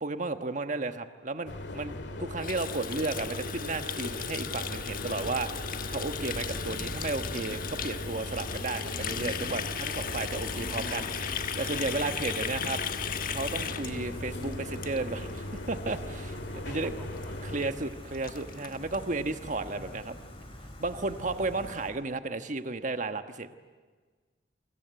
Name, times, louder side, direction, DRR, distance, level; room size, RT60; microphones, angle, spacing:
voice 1, 0.0-12.8 13.3-16.4 16.6-16.9 17.4-20.1 20.8-23.5, right 3 dB, 45° right, 8 dB, 1.4 m, -34 dB
sound 1, 1.5-17.7, left 1 dB, 70° left, 2.1 m, -39 dB
Water tap faucet, 2.4-15.4 15.7-15.9 16.2-16.6 16.8-16.9 17.2-17.3 17.6-17.7 17.9-19.0, left 8 dB, 50° left, 1.3 m, -37 dB
Gull seagull, 4.4-21.9, left 1 dB, 30° left, 4.9 m, -43 dB
voice 2, 9.9-11.1 16.5-17.6 19.6-20.1 21.1-21.7, equal, 5° left, 2 dB, 7.8 m, -49 dB
28.5 x 25.0 x 8.2 m, 1.4 s
head